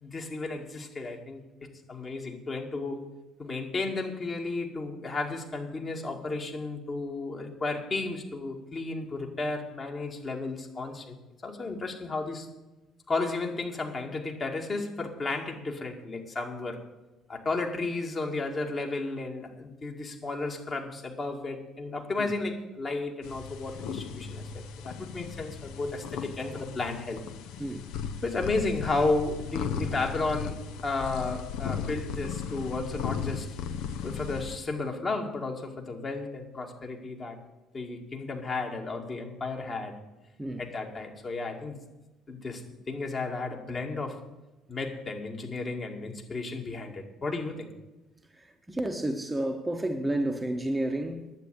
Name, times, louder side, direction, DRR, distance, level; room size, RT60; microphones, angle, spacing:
voice 1, 0.0-3.0 3.4-11.2 11.4-12.5 13.1-16.8 17.3-27.2 28.2-33.5 34.0-37.4 37.7-40.0 40.6-41.8 42.3-44.2 44.7-47.7, left 3 dB, 30° left, 2.1 m, -33 dB
sound 1, 23.2-34.6, left 7 dB, 60° left, 0.8 m, -36 dB
voice 2, 27.6-27.9 40.4-40.6 48.3-51.3, right 1 dB, 10° right, 1.0 m, -31 dB
10.5 x 8.6 x 8.2 m
figure-of-eight pair, 55°, 0 cm